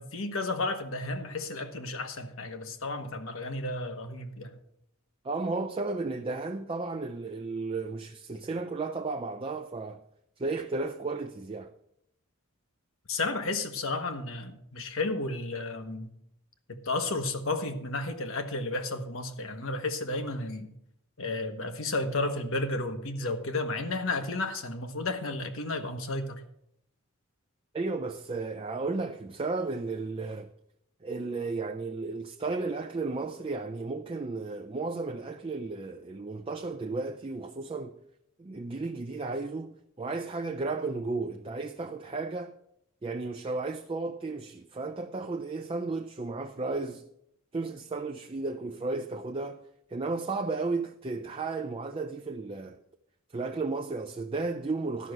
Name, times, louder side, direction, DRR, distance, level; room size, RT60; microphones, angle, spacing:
voice 1, 0.0-4.6 13.1-16.1 16.7-20.7 21.2-26.4, left 2 dB, 65° left, 1.1 m, -32 dB
voice 2, 5.2-10.0 10.4-11.7 27.7-30.5 31.0-38.0 38.4-42.6 43.0-47.0 47.5-49.6 49.9-52.8 53.3-55.1, right 3 dB, 25° right, 0.4 m, -34 dB
12.5 x 6.0 x 6.5 m
head